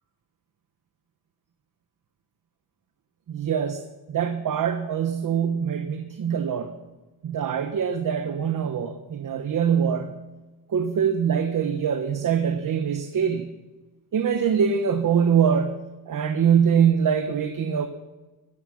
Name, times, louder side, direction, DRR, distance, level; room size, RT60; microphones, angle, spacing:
voice 1, 3.3-3.8 4.1-6.7 7.2-10.1 10.7-13.5 14.1-17.9, right 7 dB, 50° right, 7 dB, 1.1 m, -23 dB
15.0 x 12.5 x 6.2 m, 1.2 s
wide cardioid pair, 140°, 42 cm